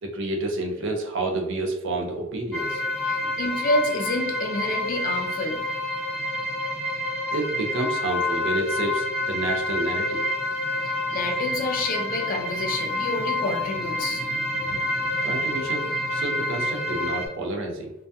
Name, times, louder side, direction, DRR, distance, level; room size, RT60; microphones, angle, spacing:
voice 1, 0.0-2.8 7.3-10.3 14.7-17.9, right 2 dB, 60° right, 3 dB, 0.5 m, -29 dB
sound 1, 2.5-17.3, left 1 dB, 5° left, 0.7 m, -28 dB
voice 2, 3.0-5.7 10.8-14.3, left 2 dB, 40° left, 4 dB, 0.3 m, -28 dB
2.2 x 2.2 x 2.6 m, 0.89 s
head